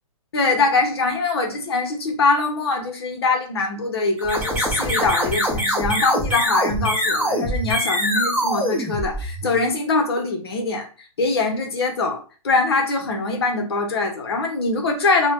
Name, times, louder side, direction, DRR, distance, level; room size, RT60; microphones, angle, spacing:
voice 1, 0.3-15.3, left 3 dB, 45° left, 3 dB, 0.8 m, -23 dB
sound 1, 4.2-9.6, equal, 5° right, 0.8 m, -23 dB
4.9 x 2.2 x 2.4 m, 0.37 s
hypercardioid pair, 175°, 18 cm